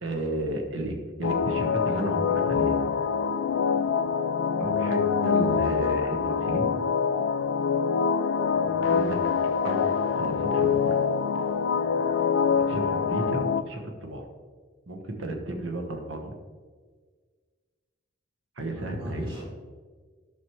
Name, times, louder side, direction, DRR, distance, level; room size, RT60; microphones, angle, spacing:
voice 1, 0.0-2.9 4.6-6.7 8.7-9.2 9.4-11.0 12.4-14.3 14.9-16.3 18.6-19.3, right 1 dB, 70° right, 3 dB, 1.2 m, -33 dB
sound 1, 1.2-13.6, left 6 dB, 65° left, 0.3 m, -25 dB
voice 2, 8.5-8.8 18.6-19.4, equal, 25° right, -4 dB, 2.5 m, -43 dB
10.5 x 6.1 x 3.1 m, 1.5 s
head